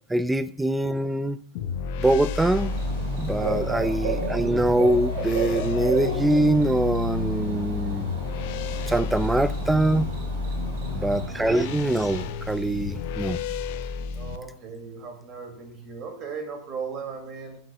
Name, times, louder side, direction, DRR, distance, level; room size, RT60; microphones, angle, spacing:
voice 1, 0.1-1.4 2.0-2.7 3.1-8.1 8.9-10.1 10.9-13.4, right 1 dB, 5° right, 16 dB, 0.4 m, -23 dB
sound 1, 1.5-14.4, left 5 dB, 45° left, 0.7 m, -31 dB
Bird / Cricket, 2.5-12.2, right 2 dB, 50° right, 4.9 m, -33 dB
voice 2, 10.6-11.1 14.1-17.6, right 5 dB, 30° right, 4 dB, 2.5 m, -38 dB
21.0 x 7.3 x 2.4 m, 0.62 s
figure-of-eight pair, 90°, 0 cm